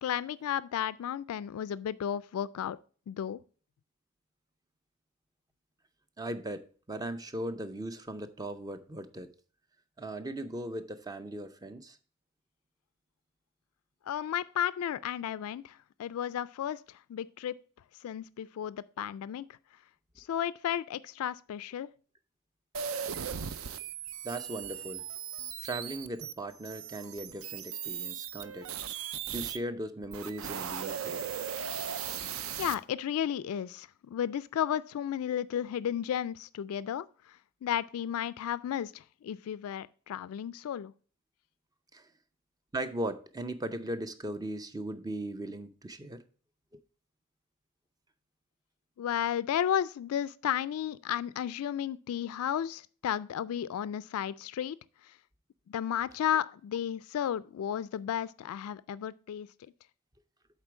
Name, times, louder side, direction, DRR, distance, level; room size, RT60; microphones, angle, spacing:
voice 1, 0.0-2.8 3.1-3.4 14.1-16.8 17.1-17.6 18.0-19.5 20.2-21.9 32.6-37.1 37.6-40.9 49.0-54.8 55.7-59.5, left 9 dB, 75° left, 0.3 m, -33 dB
voice 2, 6.2-9.3 10.0-12.0 24.2-25.0 25.6-28.7 29.3-31.2 41.9-42.1 42.7-46.2 46.7-46.8, right 1 dB, 15° right, 0.5 m, -38 dB
sound 1, 22.7-29.6 30.0-32.7, right 8 dB, 65° right, 0.5 m, -38 dB
8.0 x 3.8 x 6.0 m
head